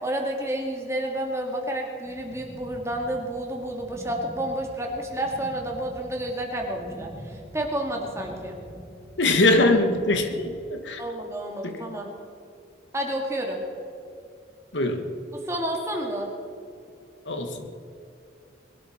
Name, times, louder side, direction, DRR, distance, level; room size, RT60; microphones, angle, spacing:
voice 1, 0.0-7.1 7.5-8.6 11.0-12.1 12.9-13.6 15.5-16.3, right 1 dB, 15° right, 1 dB, 2.2 m, -30 dB
sound 1, 2.0-10.6, equal, 20° left, 2.5 m, -45 dB
voice 2, 9.2-11.0 11.6-11.8 14.7-15.1 17.2-17.7, left 2 dB, 85° left, 6 dB, 1.6 m, -22 dB
21.5 x 12.5 x 4.4 m, 2.6 s
head